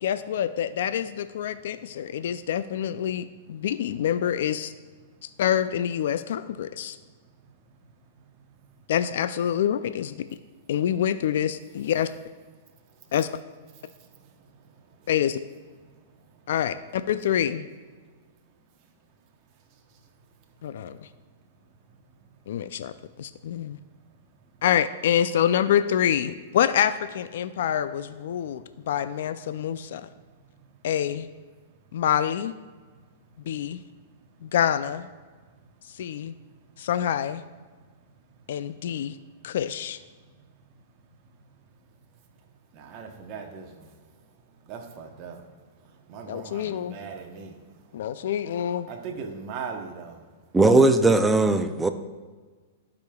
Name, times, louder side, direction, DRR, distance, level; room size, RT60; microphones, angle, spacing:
voice 1, 0.0-4.7 5.4-7.0 8.9-10.2 10.7-12.1 13.1-13.3 15.1-15.4 16.5-17.7 20.6-21.0 22.5-23.8 24.6-30.1 30.8-31.3 31.9-32.5 33.4-33.8 34.4-35.1 35.9-36.3 36.8-37.4 38.5-39.2 39.4-40.0 46.3-47.0 47.9-48.9, left 9 dB, 70° left, 0.3 m, -26 dB
voice 2, 13.7-15.1 15.8-16.4 19.9-20.0 20.6-20.7 22.2-22.4 30.2-30.3 33.5-33.6 35.6-35.7 39.4-39.5 40.3-40.4 40.7-40.8 42.7-48.1 48.9-50.3, right 5 dB, 40° right, 0.9 m, -42 dB
voice 3, 50.5-51.9, right 2 dB, 10° right, 0.4 m, -18 dB
12.0 x 5.0 x 2.3 m
hypercardioid pair, 140°, 0 cm